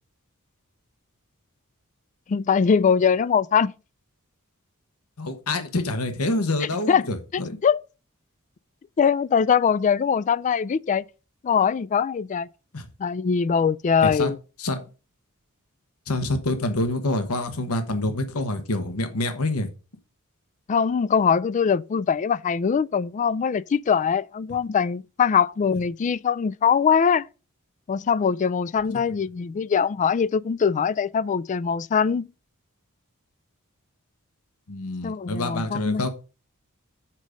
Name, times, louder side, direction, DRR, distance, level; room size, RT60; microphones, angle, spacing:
voice 1, 2.3-3.7 6.6-7.1 7.6-7.8 9.0-11.1 11.4-12.5 13.0-14.4 20.7-27.3 27.9-32.3 35.0-36.1, left 6 dB, 35° left, 0.3 m, -22 dB
voice 2, 5.2-7.6 12.7-12.9 14.0-14.3 14.6-14.8 16.1-19.7 28.9-29.0 34.7-36.1, left 2 dB, 80° left, 1.3 m, -27 dB
7.5 x 5.1 x 6.2 m
head